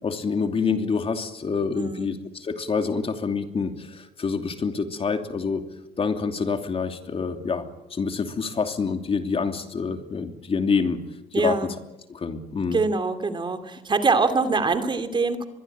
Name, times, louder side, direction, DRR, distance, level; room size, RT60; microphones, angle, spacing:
voice 1, 0.0-5.6 6.0-7.6 7.9-11.0 11.3-11.5 12.1-12.8, left 5 dB, 35° left, 6 dB, 2.9 m, -26 dB
voice 2, 1.7-2.1 11.3-11.7 12.7-15.5, right 4 dB, 30° right, 9 dB, 2.6 m, -24 dB
24.5 x 22.5 x 8.8 m, 0.97 s
cardioid pair, 110°, 17 cm